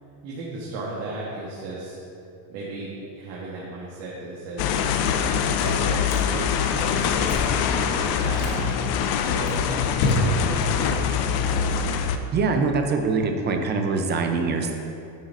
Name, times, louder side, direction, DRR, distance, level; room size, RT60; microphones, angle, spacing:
voice 1, 0.2-2.0 2.5-5.2 5.6-6.0 6.3-8.5 9.1-9.7 10.1-11.8, right 2 dB, 60° right, -6 dB, 1.5 m, -36 dB
sound 1, 4.6-12.2, left 7 dB, 50° left, 0.5 m, -24 dB
Chewing mastication, 5.6-6.5 6.8-7.6 8.2-8.6 9.1-10.6, left 3 dB, 90° left, 1.8 m, -29 dB
voice 2, 12.3-14.7, right 4 dB, 25° right, 4 dB, 0.4 m, -23 dB
9.0 x 3.8 x 5.2 m, 2.7 s
cardioid pair, 140°, 49 cm